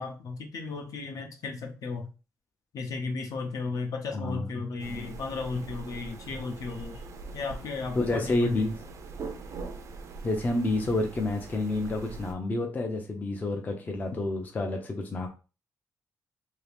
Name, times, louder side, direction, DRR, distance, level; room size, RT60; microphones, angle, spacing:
voice 1, 0.0-2.1 2.7-7.0 7.3-8.6, left 4 dB, 65° left, 4 dB, 0.7 m, -34 dB
voice 2, 4.1-4.5 8.0-8.7 10.2-15.3, left 2 dB, 25° left, 3 dB, 0.4 m, -29 dB
sound 1, 4.8-12.3, right 4 dB, 55° right, 0.5 m, -42 dB
2.8 x 2.8 x 3.3 m, 0.33 s
wide cardioid pair, 170°, 6 cm